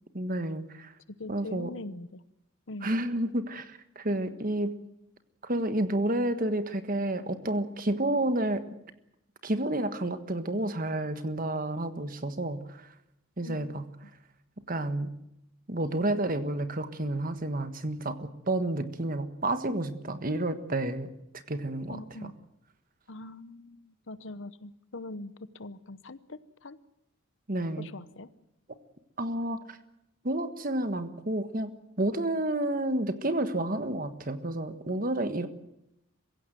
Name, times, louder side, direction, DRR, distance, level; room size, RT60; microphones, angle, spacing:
voice 1, 0.1-0.9 1.3-1.7 2.8-4.7 5.4-8.6 9.4-12.9 13.4-13.8 14.7-15.1 15.7-22.3 27.5-27.9 29.2-29.8 30.2-35.5, right 1 dB, 40° right, 10 dB, 1.5 m, -30 dB
voice 2, 1.2-2.2 2.7-2.9 13.4-13.7 14.0-14.1 21.9-22.3 23.1-26.8 27.8-28.3, left 2 dB, 65° left, 15 dB, 1.0 m, -42 dB
23.0 x 16.0 x 9.3 m, 0.83 s
head